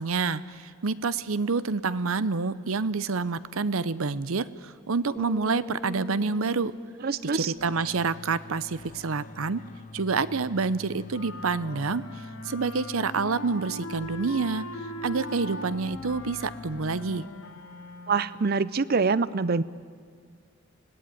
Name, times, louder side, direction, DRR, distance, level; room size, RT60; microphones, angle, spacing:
voice 1, 0.0-6.7 7.2-9.6 9.9-12.0 12.4-14.6 15.0-17.2, right 4 dB, 85° right, 16 dB, 0.7 m, -28 dB
sound 1, 5.2-8.9, left 1 dB, 5° left, 0.6 m, -41 dB
voice 2, 7.0-7.5 18.1-19.6, right 4 dB, 45° right, 18 dB, 0.6 m, -25 dB
sound 2, 7.5-17.8, left 3 dB, 40° left, 0.7 m, -46 dB
sound 3, 11.1-18.4, equal, 85° left, 2.8 m, -40 dB
25.5 x 18.0 x 9.3 m, 2.1 s
head